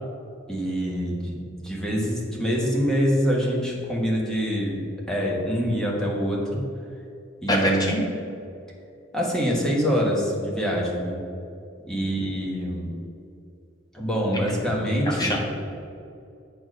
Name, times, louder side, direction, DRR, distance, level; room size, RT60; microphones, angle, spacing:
voice 1, 0.5-6.6 7.4-8.0 9.1-11.2 11.9-12.9 13.9-15.4, equal, 5° left, -3 dB, 1.5 m, -25 dB
voice 2, 7.5-8.0 14.3-14.4 15.0-15.4, equal, 20° left, -1 dB, 1.4 m, -24 dB
8.2 x 4.5 x 6.2 m, 2.5 s
head